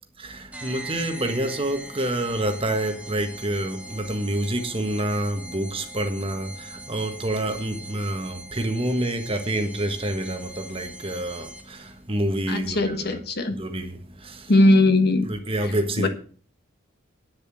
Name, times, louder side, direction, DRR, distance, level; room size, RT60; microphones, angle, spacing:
voice 1, 0.2-13.2 13.5-14.5 15.2-16.1, right 1 dB, 25° right, 1.5 m, -28 dB
sound 1, 0.5-11.9, right 1 dB, 5° right, 1.5 m, -41 dB
voice 2, 12.5-13.6 14.5-15.3 16.0-16.1, left 2 dB, 50° left, 1.3 m, -19 dB
9.8 x 7.1 x 7.7 m
head